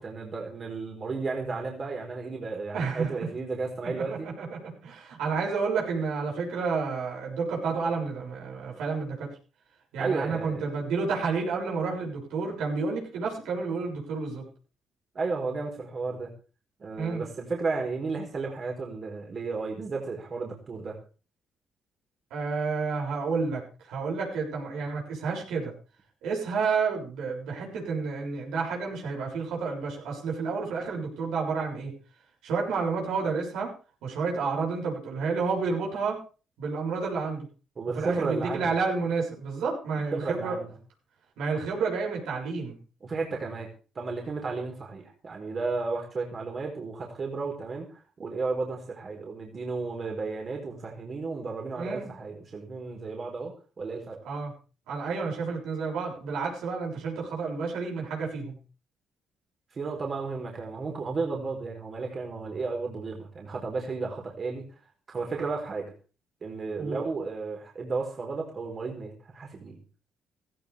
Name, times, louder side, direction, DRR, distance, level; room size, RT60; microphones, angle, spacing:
voice 1, 0.0-4.3 10.0-10.7 15.1-16.3 16.8-21.0 37.8-38.7 40.1-40.8 43.0-43.7 43.9-54.2 59.7-64.6 65.1-65.9 66.4-69.8, right 4 dB, 45° right, 0 dB, 4.5 m, -33 dB
voice 2, 2.7-3.1 4.0-9.3 9.9-14.4 17.0-17.2 22.3-25.7 26.2-31.9 32.4-33.7 34.0-36.2 36.6-37.4 37.9-40.6 41.4-42.8 51.8-52.1 54.2-54.5 54.9-58.6 66.8-67.0, right 4 dB, 85° right, -2 dB, 6.7 m, -30 dB
17.0 x 14.5 x 3.5 m, 0.35 s
supercardioid pair, 65°, 0 cm